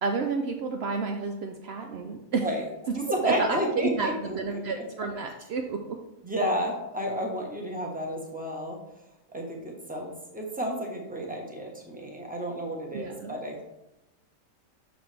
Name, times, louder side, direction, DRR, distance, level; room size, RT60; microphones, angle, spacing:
voice 1, 0.0-2.4 3.1-6.0 12.9-13.4, right 4 dB, 80° right, 3 dB, 0.5 m, -30 dB
voice 2, 3.0-4.8 6.2-8.8 9.3-13.6, equal, 5° right, 0 dB, 0.9 m, -31 dB
6.6 x 6.1 x 3.4 m, 0.95 s
omnidirectional pair, 1.7 m